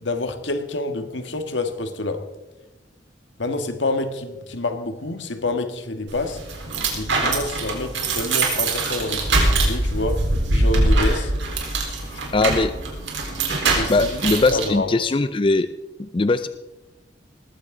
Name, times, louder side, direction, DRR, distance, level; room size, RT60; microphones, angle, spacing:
voice 1, 0.0-2.3 3.4-6.4 6.9-10.2 10.5-11.3 12.1-12.5 13.7-14.9, left 2 dB, 80° left, 7 dB, 1.7 m, -28 dB
sound 1, 6.1-14.7, right 2 dB, 85° right, 4.2 m, -23 dB
voice 2, 12.3-12.7 13.9-15.7 16.0-16.5, left 3 dB, 30° left, 12 dB, 0.4 m, -20 dB
19.5 x 15.5 x 3.9 m, 1.0 s
head